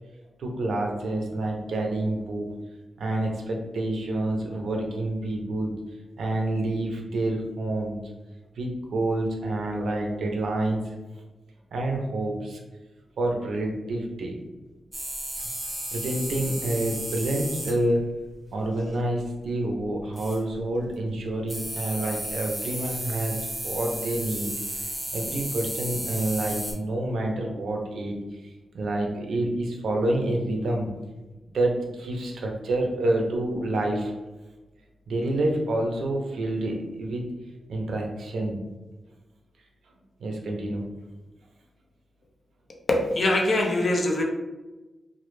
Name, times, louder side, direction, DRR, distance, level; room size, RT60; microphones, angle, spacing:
voice 1, 0.4-2.5 3.0-5.7 6.2-8.0 8.6-10.9 11.7-12.6 13.2-14.4 15.4-15.5 15.9-18.0 18.5-30.9 31.5-34.1 35.1-37.3 37.7-38.6 40.2-40.8, right 1 dB, 85° right, 1 dB, 0.4 m, -28 dB
sound 1, 14.9-17.8 20.2-20.5 21.5-26.7, right 1 dB, 15° right, 0.6 m, -33 dB
voice 2, 42.9-44.2, left 1 dB, 45° left, 0 dB, 0.4 m, -23 dB
2.1 x 2.1 x 3.0 m, 1.1 s
wide cardioid pair, 120°, 0 cm